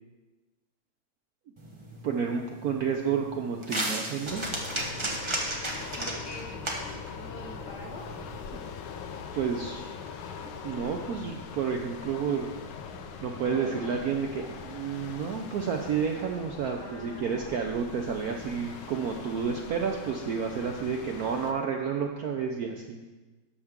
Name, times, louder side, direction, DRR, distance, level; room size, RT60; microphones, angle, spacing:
sound 1, 1.6-8.4, right 1 dB, 40° right, 0.4 m, -36 dB
voice 1, 2.0-4.5 8.5-8.6 9.3-9.9 10.6-12.5 13.2-23.0, right 6 dB, 85° right, 3 dB, 0.8 m, -30 dB
sound 2, 4.3-21.5, left 5 dB, 75° left, 1.5 m, -42 dB
voice 2, 6.0-6.5 7.1-8.0 16.8-17.8, left 2 dB, 55° left, -2 dB, 2.1 m, -44 dB
11.5 x 6.7 x 3.6 m, 1.2 s
omnidirectional pair, 2.3 m